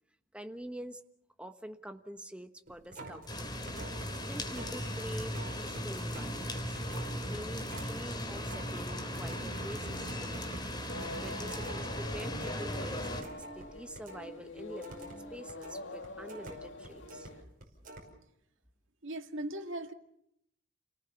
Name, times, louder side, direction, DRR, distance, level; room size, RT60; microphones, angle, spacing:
voice 1, 0.3-1.0 1.4-3.5 4.2-6.8 7.3-10.7 11.2-17.3, right 1 dB, 5° right, 7 dB, 1.2 m, -46 dB
sound 1, 2.7-14.3 14.6-17.3 17.6-18.0, right 1 dB, 45° right, 5.3 m, -49 dB
sound 2, 3.3-13.2, equal, 20° left, 3.2 m, -37 dB
sound 3, 10.9-17.4, left 2 dB, 70° left, 2.3 m, -46 dB
voice 2, 19.0-19.9, right 1 dB, 75° right, 5 dB, 2.1 m, -38 dB
30.0 x 18.5 x 7.0 m, 0.76 s
head